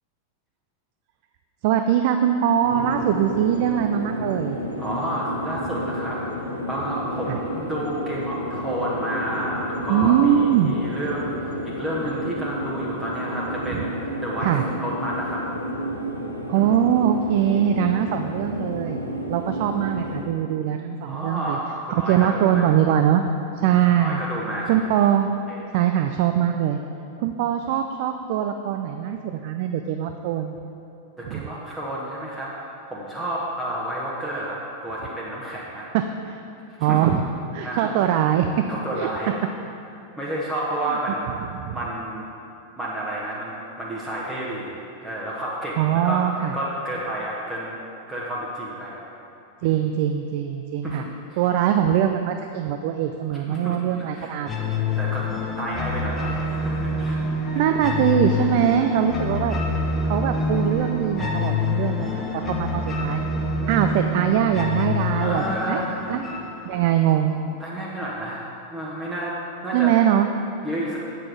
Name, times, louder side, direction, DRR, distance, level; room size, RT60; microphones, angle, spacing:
voice 1, 1.6-4.6 7.3-7.4 9.9-10.8 13.7-13.8 14.4-14.6 16.5-19.0 19.3-21.6 22.1-23.2 23.6-24.2 24.7-25.3 25.7-26.8 27.2-30.6 31.3-31.5 35.9-36.4 36.8-37.2 37.5-38.5 39.0-39.1 40.9-41.0 41.5-41.8 45.8-46.5 49.6-51.0 51.4-54.6 57.5-59.6 60.0-63.2 63.7-65.8 66.1-66.2 66.6-67.4 69.7-70.3, right 10 dB, 50° right, 6 dB, 0.3 m, -22 dB
sound 1, 2.6-20.2, equal, 90° left, 0.7 m, -31 dB
voice 2, 4.8-15.4 16.5-16.8 21.0-22.7 23.6-24.9 25.5-25.8 31.2-35.9 36.8-37.1 37.6-38.2 38.7-39.3 40.2-41.5 41.7-42.3 42.8-46.2 46.5-47.8 48.1-49.0 49.6-49.8 50.8-51.4 53.5-54.7 55.0-55.3 55.6-57.6 65.1-66.1 67.6-69.4 69.6-69.9 70.6-71.0, right 1 dB, 10° right, -6 dB, 1.0 m, -31 dB
sound 2, 54.5-67.4, left 2 dB, 20° left, 1.0 m, -26 dB
7.7 x 5.8 x 4.8 m, 2.7 s
figure-of-eight pair, 90°, 0 cm